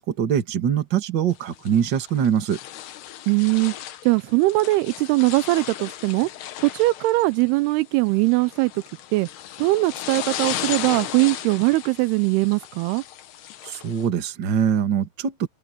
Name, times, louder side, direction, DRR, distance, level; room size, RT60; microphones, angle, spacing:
voice 1, 0.0-2.6 13.6-15.5, right 8 dB, 40° right, 1.8 m, -23 dB
sound 1, 1.3-14.1, left 12 dB, 85° left, 3.4 m, -36 dB
voice 2, 3.3-3.7 4.0-6.3 6.6-8.8 9.1-9.3 9.6-13.0, right 22 dB, 90° right, 2.6 m, -21 dB
omnidirectional pair, 4.6 m